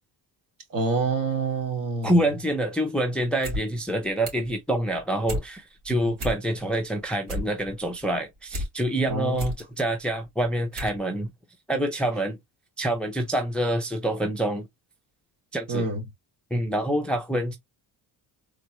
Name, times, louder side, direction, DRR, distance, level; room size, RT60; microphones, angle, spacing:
voice 1, 0.7-2.2 5.9-6.1 9.1-9.5 15.7-16.0, right 4 dB, 55° right, 1.6 m, -27 dB
voice 2, 2.0-11.3 11.7-12.4 12.8-14.7 15.5-15.9 16.5-17.6, right 1 dB, 5° left, 0.5 m, -26 dB
sound 1, 3.4-3.6 3.9-4.5 4.9-5.5 5.8-5.9 6.1-6.7 7.0-8.7 9.1-9.6 10.2-10.3 10.7-11.0 11.3-11.4, left 1 dB, 75° right, 2.1 m, -32 dB
3.7 x 2.1 x 3.0 m
cardioid pair, 110°, 41 cm